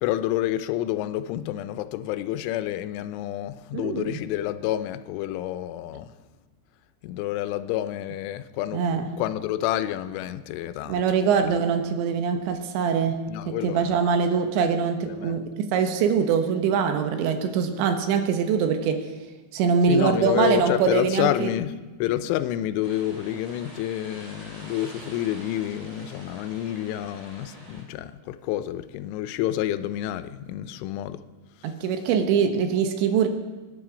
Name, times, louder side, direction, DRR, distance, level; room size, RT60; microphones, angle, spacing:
voice 1, 0.0-6.1 7.0-11.0 11.4-11.5 13.3-14.1 15.0-15.4 19.9-21.7 22.0-31.2 31.6-31.7, left 13 dB, 90° left, 3.2 m, -29 dB
voice 2, 3.7-4.2 8.7-9.0 10.9-19.1 19.5-21.5 31.6-33.3, right 6 dB, 75° right, 3.3 m, -23 dB
sound 1, 22.8-27.8, right 1 dB, 20° right, 2.9 m, -46 dB
25.5 x 10.5 x 5.1 m
omnidirectional pair, 5.4 m